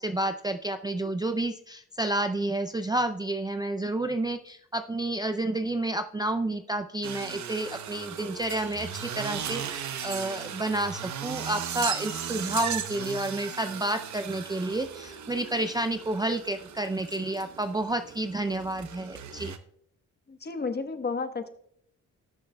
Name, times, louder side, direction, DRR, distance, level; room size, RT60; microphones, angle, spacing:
voice 1, 0.0-19.5, right 1 dB, 15° right, 8 dB, 0.4 m, -30 dB
sound 1, 7.0-19.6, right 8 dB, 65° right, 0.9 m, -37 dB
voice 2, 20.3-21.5, left 4 dB, 30° left, 7 dB, 1.1 m, -32 dB
19.0 x 6.4 x 2.2 m, 0.67 s
cardioid pair, 100°, 31 cm